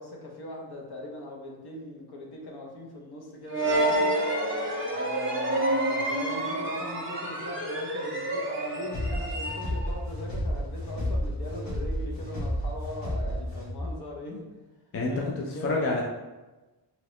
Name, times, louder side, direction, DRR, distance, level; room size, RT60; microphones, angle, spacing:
voice 1, 0.0-4.1 4.9-14.6 15.1-16.0, left 1 dB, 65° left, 0 dB, 0.7 m, -40 dB
sound 1, 3.5-10.0, right 1 dB, 30° right, 0.6 m, -28 dB
sound 2, 8.9-14.0, equal, 80° left, 1.5 m, -31 dB
voice 2, 14.9-16.0, left 2 dB, 35° left, -1 dB, 0.4 m, -28 dB
2.9 x 2.9 x 3.0 m, 1.1 s
wide cardioid pair, 155°, 42 cm